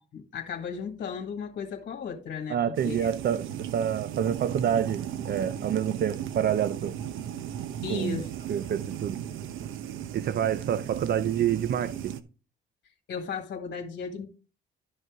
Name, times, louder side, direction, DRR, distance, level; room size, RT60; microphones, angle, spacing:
voice 1, 0.1-3.1 7.8-8.3 13.1-14.3, left 6 dB, 55° left, 1.8 m, -35 dB
voice 2, 2.5-6.9 7.9-8.2 8.5-9.2 10.1-11.9, right 9 dB, 55° right, 0.5 m, -27 dB
sound 1, 2.7-12.2, right 10 dB, 85° right, 0.9 m, -36 dB
12.0 x 5.4 x 3.6 m
cardioid pair, 90°, 20 cm